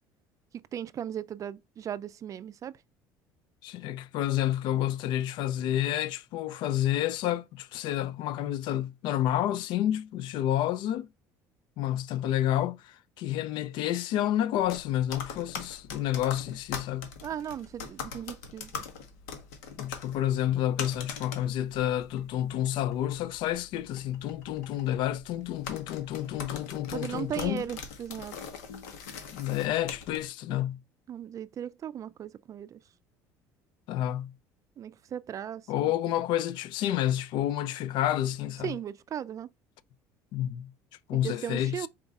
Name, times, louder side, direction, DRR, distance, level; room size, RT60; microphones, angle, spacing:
voice 1, 0.5-2.7 17.2-18.7 26.9-28.3 31.1-32.8 34.8-35.9 38.6-39.5 41.1-41.9, right 9 dB, 40° right, 0.4 m, -37 dB
voice 2, 3.6-11.1 11.8-17.1 19.8-27.7 29.3-30.8 33.9-34.3 35.7-38.8 40.3-40.7 41.1-41.9, left 12 dB, 65° left, 0.4 m, -29 dB
sound 1, 14.6-30.3, left 6 dB, 90° left, 1.1 m, -43 dB
4.3 x 2.3 x 3.9 m
supercardioid pair, 90°, 8 cm